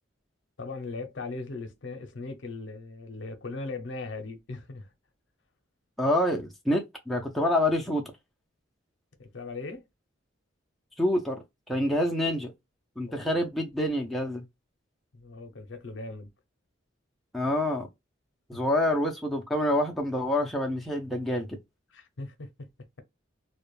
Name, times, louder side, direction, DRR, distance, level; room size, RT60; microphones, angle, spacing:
voice 1, 0.6-4.9 9.2-9.8 11.7-12.0 13.1-13.4 15.1-16.3 18.5-18.6 21.9-22.7, left 3 dB, 65° left, 0.5 m, -39 dB
voice 2, 6.0-8.0 11.0-11.4 11.7-12.5 13.0-14.4 17.3-17.9 18.5-21.6, left 1 dB, ahead, 0.4 m, -27 dB
2.2 x 2.1 x 3.0 m
head